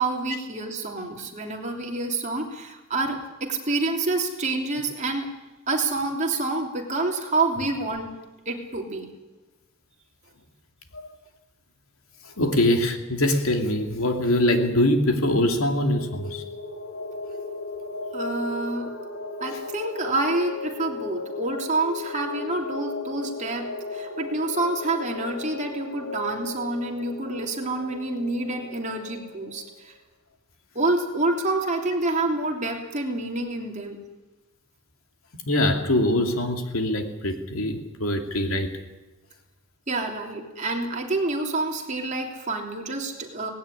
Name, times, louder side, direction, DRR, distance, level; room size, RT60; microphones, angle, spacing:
voice 1, 0.0-5.3 5.7-8.1 8.4-9.1 18.1-19.0 19.4-29.9 30.7-34.0 39.9-43.5, right 2 dB, 35° right, 1 dB, 3.2 m, -28 dB
voice 2, 12.2-16.4 35.5-38.7, left 1 dB, 80° left, 5 dB, 2.8 m, -23 dB
sound 1, 15.3-29.7, left 3 dB, 65° left, 3.6 m, -36 dB
19.0 x 16.5 x 9.9 m, 1.1 s
head